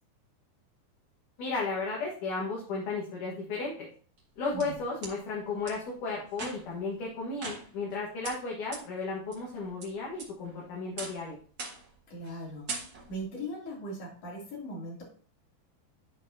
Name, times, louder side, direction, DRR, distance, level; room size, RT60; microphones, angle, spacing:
voice 1, 1.4-3.9 4.4-11.4, left 3 dB, 60° left, -4 dB, 2.8 m, -34 dB
sound 1, 4.2-5.1 5.7-5.8 6.3-6.8 7.4-8.0 8.2-8.3 8.7-8.8 9.3-9.8 10.2-10.6 11.0-11.2 11.6-11.9 12.2-12.4 12.7-13.2, right 3 dB, 60° right, 1.0 m, -40 dB
voice 2, 12.1-12.7 13.1-15.0, equal, 45° left, -4 dB, 3.6 m, -39 dB
12.0 x 4.4 x 2.8 m, 0.43 s
omnidirectional pair, 4.6 m